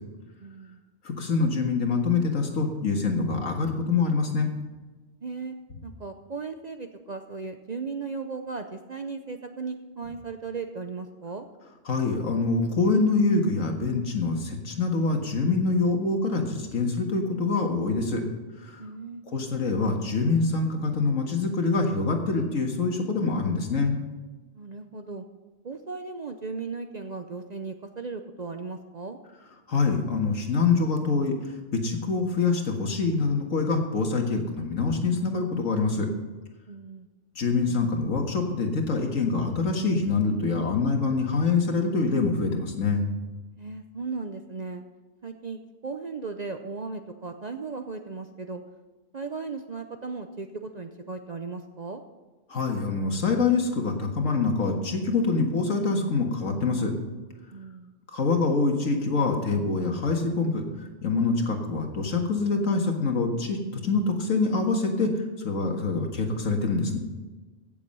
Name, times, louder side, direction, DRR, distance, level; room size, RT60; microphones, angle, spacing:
voice 1, 0.4-0.8 5.2-5.6 5.8-11.5 18.8-19.2 24.6-25.2 25.6-29.2 36.7-37.1 43.6-44.8 45.2-48.6 49.1-52.0 57.5-57.9, right 4 dB, 45° right, 6 dB, 0.6 m, -36 dB
voice 2, 1.0-4.5 11.9-18.2 18.6-18.8 19.3-23.9 29.7-36.1 37.4-43.1 52.5-56.9 58.1-60.7 61.0-65.1 65.4-67.0, left 4 dB, 80° left, 3 dB, 2.0 m, -25 dB
16.0 x 7.1 x 5.5 m, 1.2 s
omnidirectional pair, 1.4 m